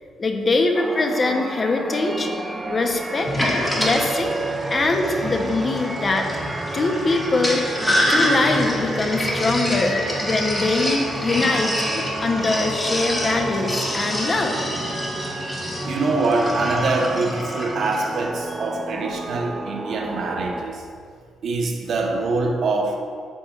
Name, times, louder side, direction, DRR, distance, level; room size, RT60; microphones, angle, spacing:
voice 1, 0.2-2.3 2.7-3.3 3.8-4.3 4.7-6.3 6.7-7.6 8.1-14.6, left 3 dB, 35° left, 4 dB, 0.8 m, -22 dB
sound 1, 0.7-20.7, right 2 dB, 20° right, 0.5 m, -31 dB
Sink (filling or washing), 3.2-18.2, left 1 dB, 10° left, 1.8 m, -27 dB
voice 2, 15.8-20.9 21.4-23.0, right 3 dB, 60° right, 2 dB, 1.0 m, -24 dB
8.8 x 8.3 x 2.4 m, 2.2 s
cardioid pair, 90°, 0 cm